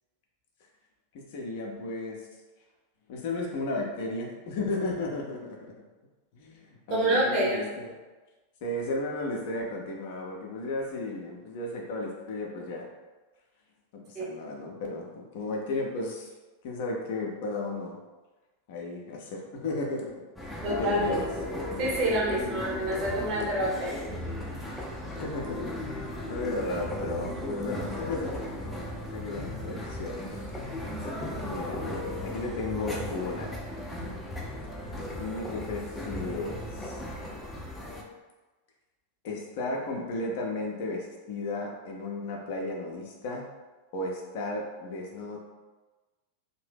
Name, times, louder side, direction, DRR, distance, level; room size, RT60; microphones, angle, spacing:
voice 1, 1.1-2.2 3.1-5.7 6.3-7.9 8.6-12.8 13.9-16.3 16.6-18.0 18.7-20.1 20.7-21.3 22.4-22.6 25.2-25.7 26.3-28.5 29.1-30.2 31.4-31.9 32.2-33.5 35.2-37.0 39.2-43.4 43.9-45.4, left 2 dB, 50° left, 0 dB, 0.6 m, -34 dB
voice 2, 6.9-7.6 14.1-14.3 20.6-21.2 21.8-24.0, right 1 dB, 35° right, -5 dB, 1.0 m, -27 dB
sound 1, 20.4-38.0, left 1 dB, 5° left, 0.5 m, -36 dB
2.7 x 2.1 x 3.3 m, 1.2 s
figure-of-eight pair, 90°, 0 cm